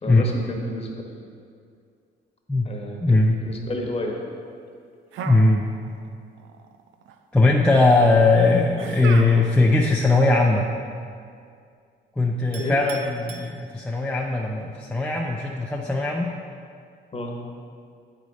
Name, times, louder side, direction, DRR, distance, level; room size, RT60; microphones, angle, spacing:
voice 1, 0.0-1.3 2.6-4.2 8.1-8.2 12.5-12.7 17.1-17.3, left 1 dB, 30° left, 0 dB, 1.2 m, -31 dB
voice 2, 3.0-3.4 5.2-5.6 7.3-10.7 12.2-16.3, left 2 dB, 5° left, -2 dB, 0.5 m, -19 dB
sound 1, 5.1-6.1 6.4-7.1 8.8-9.7, right 6 dB, 80° right, 0.5 m, -35 dB
Chink clink, 12.5-14.2, right 4 dB, 55° right, 0.9 m, -43 dB
8.0 x 4.9 x 4.1 m, 2.3 s
cardioid pair, 90°, 20 cm